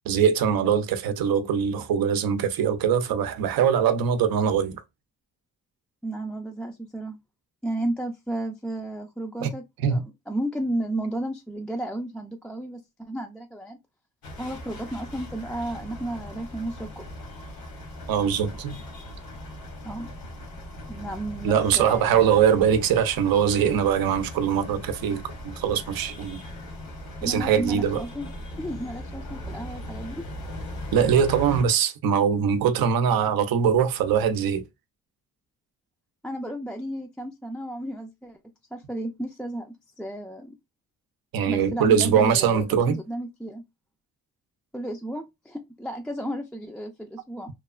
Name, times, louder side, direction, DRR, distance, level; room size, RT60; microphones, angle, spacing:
voice 1, 0.1-4.8 9.4-9.5 9.8-10.0 18.1-18.8 21.4-26.4 27.2-28.0 30.9-34.7 41.3-43.0, right 8 dB, 80° right, 0.6 m, -22 dB
voice 2, 6.0-7.2 7.6-13.8 14.4-17.1 19.8-20.1 20.9-22.3 27.2-28.3 28.6-30.2 36.2-38.4 38.7-40.5 41.4-43.6 44.7-47.5, right 1 dB, 5° left, 0.3 m, -33 dB
sound 1, 14.2-31.6, left 1 dB, 75° left, 1.2 m, -39 dB
3.1 x 2.1 x 2.3 m
cardioid pair, 100°, 35 cm